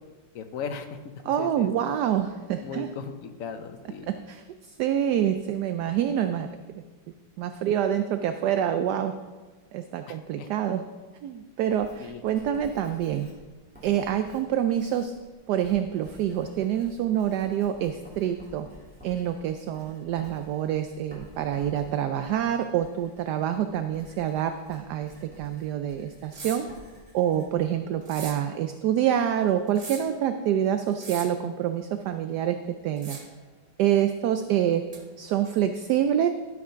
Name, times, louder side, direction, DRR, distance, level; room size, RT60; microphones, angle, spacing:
voice 1, 0.3-0.9 1.2-1.7 2.6-4.1 10.1-10.5 12.0-12.2, left 6 dB, 60° left, 7 dB, 0.9 m, -37 dB
voice 2, 1.3-2.9 4.1-6.5 7.4-9.1 9.7-10.8 11.2-13.3 13.8-15.1 15.5-18.7 19.0-26.7 27.1-32.6 32.8-33.2 33.8-34.8 35.2-36.3, right 10 dB, 75° right, 8 dB, 1.0 m, -26 dB
Writing, 11.7-28.3, equal, 5° right, 2.8 m, -51 dB
sound 1, 26.3-26.7 28.0-28.5 29.7-30.2 30.9-31.4 33.0-33.4 34.9-35.0, right 3 dB, 45° right, 0.4 m, -40 dB
12.0 x 5.9 x 5.6 m, 1.3 s
omnidirectional pair, 2.1 m